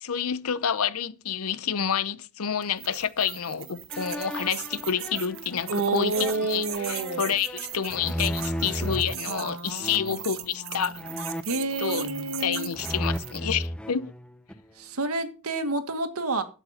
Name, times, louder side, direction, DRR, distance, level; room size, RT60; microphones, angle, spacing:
voice 1, 0.0-11.0 11.8-12.1 12.4-14.1, left 8 dB, 85° left, 0.7 m, -29 dB
sound 1, 2.6-13.6, right 11 dB, 65° right, 1.3 m, -39 dB
sound 2, 3.9-9.2 9.8-10.3 11.0-12.4 12.7-14.7, equal, 5° left, 0.7 m, -35 dB
voice 2, 5.7-7.3 9.3-10.1 10.5-11.2 11.5-12.7 14.8-16.4, right 2 dB, 90° right, 1.9 m, -30 dB
12.5 x 8.2 x 4.3 m
head